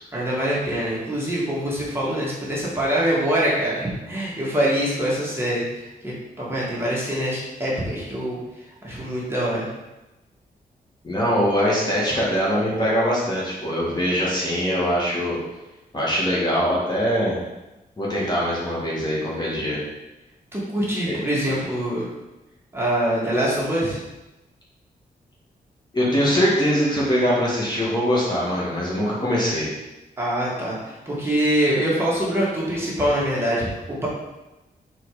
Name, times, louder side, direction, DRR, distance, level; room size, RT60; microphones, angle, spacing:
voice 1, 0.1-8.4 8.8-9.7 20.5-22.1 22.7-24.0 30.2-33.7, right 1 dB, 15° right, -6 dB, 1.9 m, -24 dB
voice 2, 11.0-15.4 15.9-17.4 18.0-19.8 21.1-21.2 25.9-29.7, equal, 25° left, -6 dB, 1.9 m, -22 dB
4.5 x 4.3 x 4.8 m, 1.0 s
cardioid pair, 95°, 16 cm